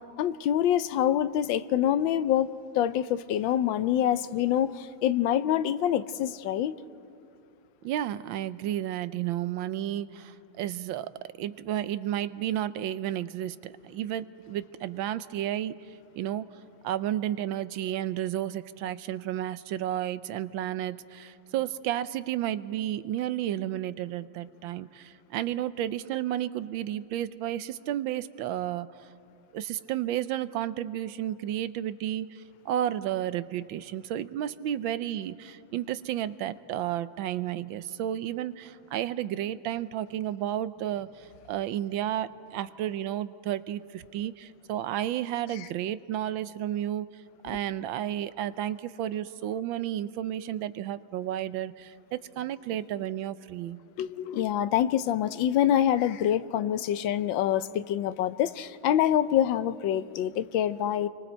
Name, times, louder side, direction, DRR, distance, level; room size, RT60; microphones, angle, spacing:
voice 1, 0.0-6.7 54.0-61.1, left 10 dB, 75° left, 1.4 m, -26 dB
voice 2, 7.8-11.1 11.4-15.8 16.2-16.5 16.8-28.9 29.5-47.1 47.4-53.8, right 12 dB, 80° right, 1.4 m, -32 dB
29.5 x 24.5 x 4.5 m
omnidirectional pair, 2.1 m